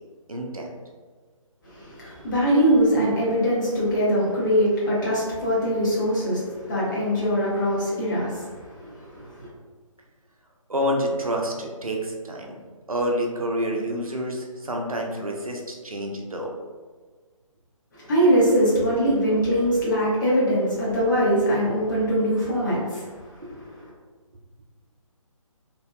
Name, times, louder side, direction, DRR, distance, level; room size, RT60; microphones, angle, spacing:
voice 1, 0.3-0.7 10.7-12.6 12.9-16.5 23.4-23.6, equal, 85° right, 0 dB, 0.5 m, -28 dB
voice 2, 1.6-9.5 17.9-23.8, equal, 35° left, -7 dB, 0.8 m, -22 dB
2.6 x 2.2 x 2.2 m, 1.4 s
figure-of-eight pair, 145°, 18 cm